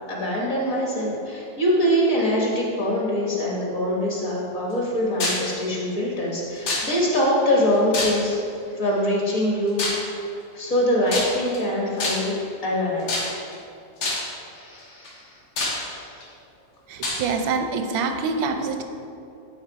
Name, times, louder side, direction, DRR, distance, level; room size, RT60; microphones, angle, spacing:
voice 1, 0.1-8.4 8.7-9.8 10.5-12.4 12.6-13.2 14.5-15.4 15.9-16.2, equal, 50° left, -3 dB, 1.4 m, -23 dB
sound 1, 5.2-5.5 6.7-7.2 7.9-8.5 9.8-10.1 11.1-11.6 12.0-12.4 13.1-13.5 14.0-14.4 15.0-15.1 15.6-16.2 17.0-17.2, left 2 dB, 85° left, 2.0 m, -26 dB
voice 2, 16.9-18.8, right 4 dB, 90° right, 6 dB, 1.4 m, -25 dB
9.7 x 3.5 x 4.6 m, 2.6 s
omnidirectional pair, 2.0 m